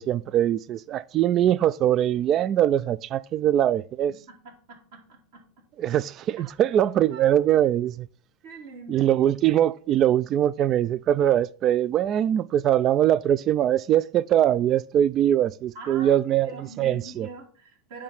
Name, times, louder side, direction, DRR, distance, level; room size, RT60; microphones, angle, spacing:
voice 1, 0.0-4.1 5.8-8.1 8.9-17.3, right 11 dB, 40° right, 0.4 m, -22 dB
voice 2, 4.3-5.4 6.4-6.5 7.1-7.4 8.4-9.1 15.7-18.0, right 3 dB, 65° right, 3.0 m, -43 dB
8.5 x 3.3 x 5.8 m
hypercardioid pair, 90°, 0 cm